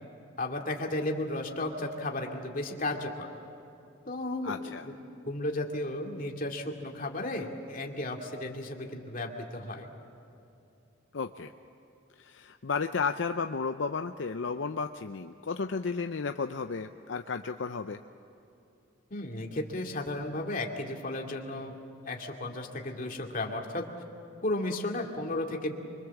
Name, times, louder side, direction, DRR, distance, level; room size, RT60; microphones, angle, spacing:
voice 1, 0.4-3.3 4.1-4.9 5.2-9.9 19.1-21.8 22.0-23.8 24.4-25.7, left 2 dB, 45° left, 1 dB, 2.4 m, -34 dB
voice 2, 4.4-4.9 11.1-11.5 12.2-18.0, left 5 dB, 70° left, 7 dB, 0.6 m, -33 dB
25.0 x 24.5 x 7.2 m, 2.8 s
head